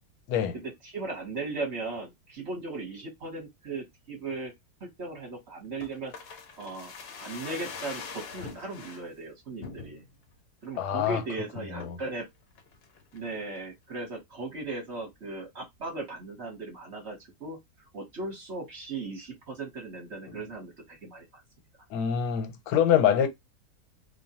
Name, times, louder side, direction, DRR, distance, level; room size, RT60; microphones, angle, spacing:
voice 1, 0.5-4.5 4.8-6.1 6.6-6.9 7.2-10.0 10.6-12.3 13.1-17.6 17.9-21.3, right 3 dB, 45° right, 1.1 m, -37 dB
sound 1, 5.8-9.0 9.6-10.2 10.6-10.7 11.0-11.3 11.8-12.1 12.6-13.3 13.6-13.7, left 5 dB, 65° left, 0.6 m, -43 dB
voice 2, 10.8-11.2 11.7-12.0 20.3-20.4 21.9-23.3, left 9 dB, 85° left, 1.2 m, -25 dB
2.7 x 2.1 x 2.7 m
omnidirectional pair, 1.7 m